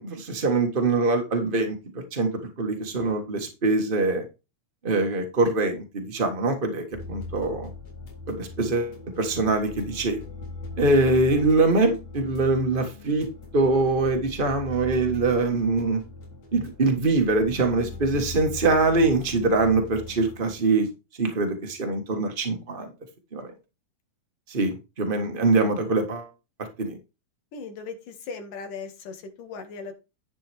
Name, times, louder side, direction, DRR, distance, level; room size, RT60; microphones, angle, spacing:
voice 1, 0.0-2.3 2.6-4.2 4.8-7.7 8.3-10.2 10.8-13.3 13.5-16.0 16.5-20.9 21.2-22.9 23.3-23.5 24.5-26.3 26.6-27.0, right 3 dB, 45° right, 5 dB, 0.7 m, -23 dB
sound 1, 6.9-20.6, left 3 dB, 55° left, 4.2 m, -40 dB
voice 2, 27.5-29.9, left 4 dB, 90° left, 6 dB, 3.6 m, -38 dB
10.5 x 7.5 x 3.5 m, 0.28 s
omnidirectional pair, 3.6 m